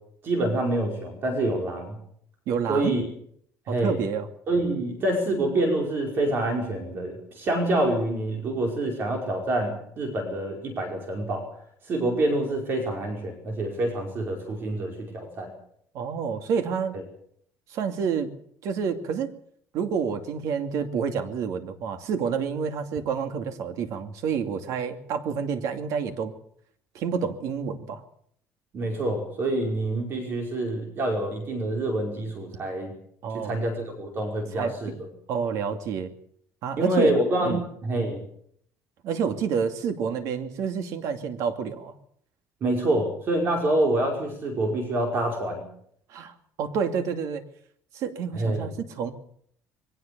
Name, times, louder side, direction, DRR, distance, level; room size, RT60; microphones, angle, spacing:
voice 1, 0.2-2.0 2.7-3.0 3.7-4.0 4.5-11.4 11.9-15.5 28.7-32.9 33.3-34.9 36.8-37.6 37.8-38.2 42.6-45.6 48.3-48.7, right 1 dB, 35° right, 2 dB, 5.3 m, -26 dB
voice 2, 2.5-2.9 3.7-4.3 15.9-17.0 17.7-18.3 18.6-19.3 19.7-26.3 26.9-28.0 33.2-33.6 34.5-34.7 35.3-36.1 36.6-37.1 37.4-37.6 39.0-41.9 46.1-47.4 47.9-49.1, right 6 dB, 60° right, 7 dB, 2.5 m, -28 dB
22.5 x 18.0 x 7.0 m, 0.65 s
cardioid pair, 170°, 6 cm